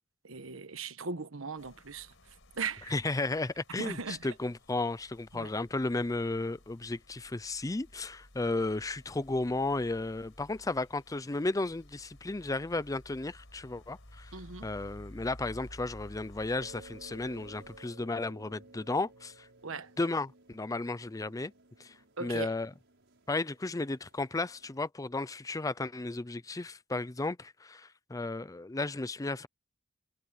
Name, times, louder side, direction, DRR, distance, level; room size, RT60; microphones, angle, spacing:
voice 1, 0.2-3.0 3.8-4.3 5.3-5.5 14.3-14.7 19.6-19.9 22.2-22.5, right 4 dB, 80° right, 1.3 m, -39 dB
sound 1, 1.6-17.8, left 1 dB, 65° left, 5.3 m, -54 dB
voice 2, 2.9-14.4 14.6-19.5 20.0-21.5 21.8-22.0 22.2-22.7 23.3-29.5, left 2 dB, 15° left, 0.5 m, -34 dB
sound 2, 16.5-24.9, right 2 dB, 65° right, 7.0 m, -57 dB
head